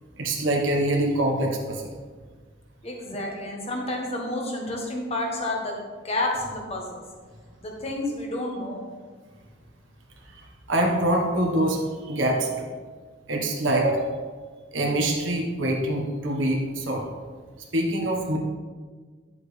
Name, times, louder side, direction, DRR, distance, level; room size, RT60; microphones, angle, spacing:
voice 1, 0.2-1.9 10.7-11.8 12.1-12.7 13.3-14.1 14.7-17.1 17.7-18.4, right 1 dB, 80° right, 0 dB, 1.5 m, -24 dB
voice 2, 2.8-7.0 7.6-8.8, left 1 dB, 30° left, 0 dB, 1.5 m, -30 dB
10.5 x 7.1 x 3.4 m, 1.5 s
head